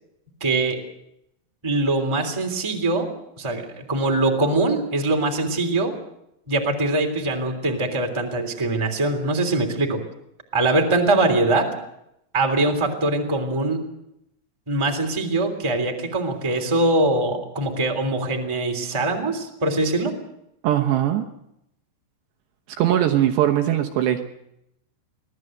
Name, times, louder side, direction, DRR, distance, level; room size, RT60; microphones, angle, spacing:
voice 1, 0.4-0.8 1.6-3.1 3.4-5.9 6.5-10.0 10.5-11.7 12.3-13.8 14.7-20.1, right 2 dB, 10° right, 3 dB, 2.1 m, -22 dB
voice 2, 20.6-21.2 22.8-24.2, right 11 dB, 70° right, 4 dB, 3.0 m, -20 dB
23.5 x 17.0 x 7.9 m, 0.80 s
omnidirectional pair, 5.6 m